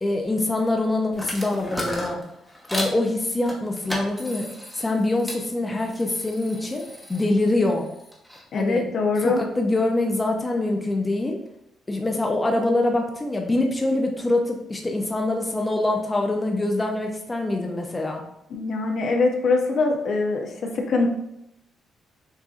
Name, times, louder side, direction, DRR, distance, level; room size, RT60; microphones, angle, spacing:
voice 1, 0.0-2.2 2.7-4.5 4.7-6.8 7.1-7.9 8.5-8.9 9.2-11.4 11.9-18.2, left 2 dB, 15° left, 1 dB, 0.6 m, -24 dB
sound 1, 1.1-3.0 3.5-5.4 5.8-8.4, equal, ahead, 0.9 m, -35 dB
voice 2, 8.5-9.4 18.5-21.1, left 3 dB, 60° left, 2 dB, 0.7 m, -23 dB
6.2 x 2.7 x 2.5 m, 0.81 s
cardioid pair, 120°, 0 cm